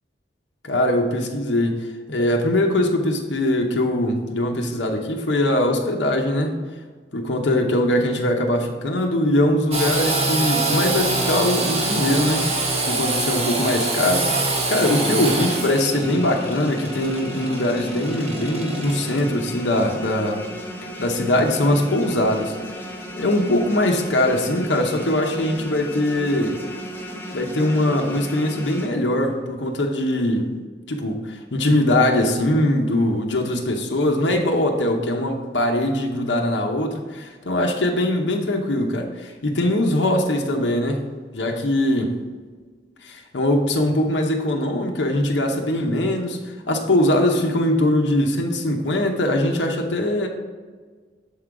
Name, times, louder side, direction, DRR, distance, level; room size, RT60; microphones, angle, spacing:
voice 1, 0.6-1.8 2.1-6.5 7.1-12.4 12.8-20.4 21.0-22.5 23.2-26.6 27.3-30.5 30.9-41.0 41.3-42.1 43.0-50.3, left 1 dB, 90° left, 2 dB, 0.8 m, -21 dB
Engine / Sawing, 9.7-19.2, right 2 dB, 35° right, 0.8 m, -25 dB
sound 1, 14.8-28.9, equal, 10° left, 0.7 m, -35 dB
7.0 x 3.8 x 4.7 m, 1.5 s
head